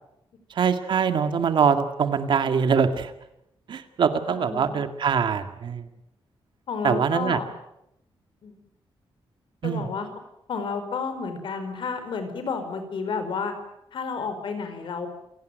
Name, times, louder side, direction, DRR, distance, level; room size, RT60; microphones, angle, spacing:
voice 1, 0.5-3.1 3.7-5.9 6.8-7.4 9.6-9.9, right 6 dB, 55° right, 9 dB, 2.0 m, -23 dB
voice 2, 4.3-4.8 6.7-7.5 8.4-8.5 9.6-10.1 10.5-13.5 13.9-15.1, left 5 dB, 60° left, 8 dB, 4.8 m, -31 dB
27.5 x 18.5 x 9.2 m, 0.83 s
wide cardioid pair, 180°, 9 cm